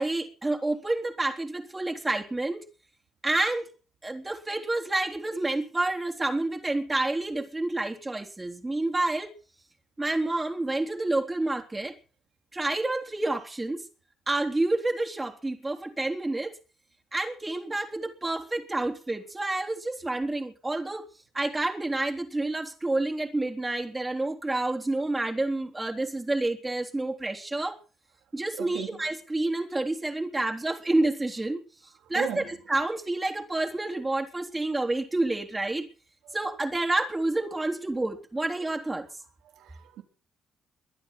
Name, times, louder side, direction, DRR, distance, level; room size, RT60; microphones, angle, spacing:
voice 1, 0.0-2.6 3.2-3.7 4.0-9.3 10.0-12.0 12.5-13.8 14.3-16.5 17.1-21.1 21.3-27.8 28.3-31.6 32.1-35.9 36.3-39.1, right 2 dB, 15° right, 3.5 m, -29 dB
voice 2, 28.6-29.0 32.1-32.6 36.2-36.4 39.5-40.0, right 9 dB, 85° right, 3.5 m, -36 dB
23.0 x 9.4 x 6.0 m
cardioid pair, 90°, 0 cm